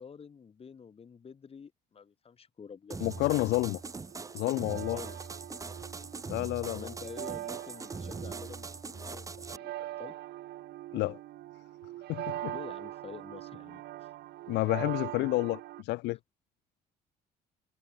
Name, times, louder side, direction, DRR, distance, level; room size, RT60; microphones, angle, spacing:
voice 1, 0.0-3.0 4.3-4.4 4.9-5.3 6.7-10.2 12.5-14.1, left 6 dB, 35° left, 5.5 m, -48 dB
sound 1, 2.9-9.6, right 4 dB, 20° right, 0.9 m, -41 dB
voice 2, 3.0-3.8 4.3-5.0 6.3-6.9 10.9-11.2 12.1-12.5 14.5-16.2, left 20 dB, 85° left, 0.8 m, -30 dB
sound 2, 3.0-15.8, right 15 dB, 75° right, 3.6 m, -43 dB
cardioid pair, 110°, 17 cm